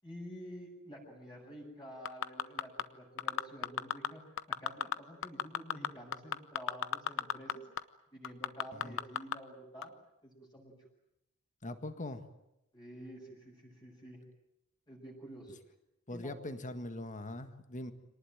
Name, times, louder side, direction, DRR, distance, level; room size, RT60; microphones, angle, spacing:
voice 1, 0.0-7.6 8.1-9.9 10.2-10.7 12.7-14.2 14.9-15.5 16.1-16.4, equal, 20° left, -3 dB, 7.2 m, -49 dB
sound 1, 2.1-2.8 3.2-4.1 4.4-5.0 5.2-7.5 7.8-7.9 8.2-9.4 9.8-9.9, left 8 dB, 60° left, 0.8 m, -32 dB
voice 2, 11.6-12.2 16.1-17.9, left 1 dB, 35° left, 9 dB, 1.7 m, -41 dB
26.0 x 19.0 x 9.2 m, 0.86 s
head